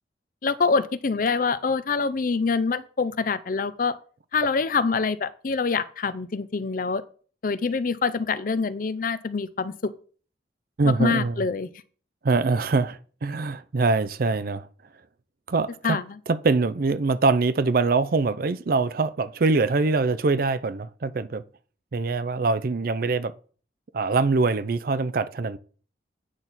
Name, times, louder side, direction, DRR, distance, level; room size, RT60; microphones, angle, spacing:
voice 1, 0.4-3.9 4.3-7.0 7.4-9.9 10.9-11.7 15.8-16.2, left 4 dB, 50° left, 0.5 m, -25 dB
voice 2, 10.8-11.4 12.2-14.7 15.5-16.0 16.3-21.4 21.9-23.3 23.9-25.6, right 3 dB, 50° right, 0.5 m, -23 dB
8.8 x 6.0 x 4.1 m
head